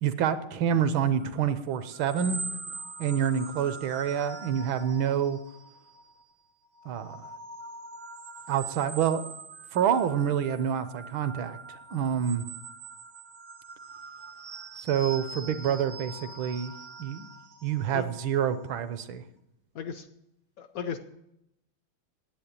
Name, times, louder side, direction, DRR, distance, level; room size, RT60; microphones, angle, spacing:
voice 1, 0.0-2.6 3.0-5.4 6.8-7.3 8.5-9.3 9.7-12.4 14.8-16.7 17.0-17.3 17.6-19.2, right 8 dB, 75° right, 12 dB, 1.6 m, -27 dB
sound 1, 1.0-6.2 6.7-19.0, right 4 dB, 40° right, 0.6 m, -43 dB
voice 2, 19.7-20.1 20.6-21.0, left 7 dB, 70° left, 9 dB, 0.8 m, -35 dB
9.8 x 8.4 x 8.7 m, 0.83 s
omnidirectional pair, 2.3 m